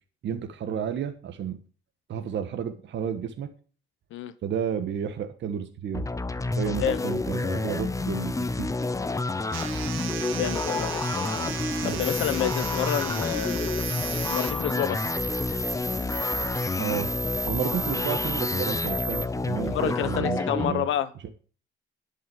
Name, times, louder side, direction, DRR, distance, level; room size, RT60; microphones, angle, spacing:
voice 1, 0.2-1.6 2.1-3.5 4.4-6.0 6.6-8.7 11.8-12.0 16.8-17.1 17.4-20.8 21.2-21.3, right 8 dB, 65° right, 1.3 m, -31 dB
sound 1, 5.9-20.7, left 3 dB, 15° left, 0.8 m, -29 dB
voice 2, 6.6-7.0 10.3-11.5 11.8-13.9 14.3-15.1 19.6-21.1, left 10 dB, 80° left, 1.1 m, -29 dB
sound 2, 9.5-14.5, right 9 dB, 90° right, 1.7 m, -36 dB
sound 3, 12.0-19.2, right 1 dB, 10° right, 1.5 m, -34 dB
11.0 x 5.6 x 7.0 m
cardioid pair, 90°, 20 cm